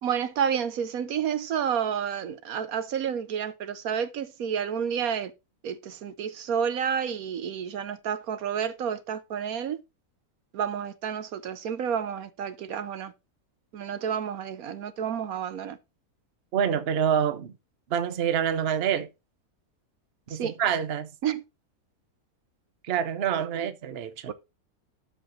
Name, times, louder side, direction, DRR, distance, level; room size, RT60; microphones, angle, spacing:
voice 1, 0.0-5.3 5.6-9.8 10.5-13.1 13.7-15.8 20.3-20.6 21.2-21.4 23.5-23.7 24.3-24.4, right 8 dB, 70° right, 1.2 m, -30 dB
voice 2, 16.5-17.5 17.9-19.1 20.3-21.1 22.8-24.3, right 8 dB, 50° right, 0.9 m, -26 dB
12.5 x 4.9 x 2.8 m
omnidirectional pair, 1.6 m